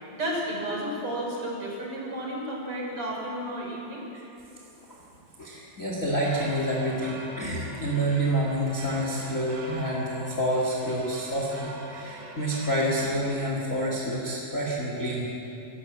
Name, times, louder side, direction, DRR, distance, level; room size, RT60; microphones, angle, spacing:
voice 1, 0.1-4.1, right 1 dB, 40° right, -2 dB, 5.1 m, -32 dB
voice 2, 5.4-15.3, equal, 25° left, -3 dB, 2.4 m, -28 dB
sound 1, 6.0-13.1, right 2 dB, 70° right, 4.1 m, -43 dB
27.0 x 13.0 x 7.6 m, 2.8 s
omnidirectional pair, 4.1 m